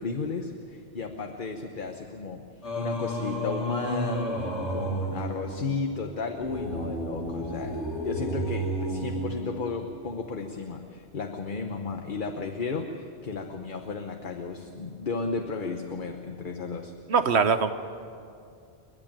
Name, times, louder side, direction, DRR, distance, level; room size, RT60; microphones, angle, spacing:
voice 1, 0.0-2.4 2.8-16.9, left 4 dB, 50° left, 4 dB, 1.2 m, -34 dB
Singing, 2.6-10.0, equal, 80° left, 2.5 m, -32 dB
voice 2, 17.1-17.7, right 5 dB, 70° right, 10 dB, 1.3 m, -22 dB
30.0 x 11.0 x 9.0 m, 2.4 s
omnidirectional pair, 1.1 m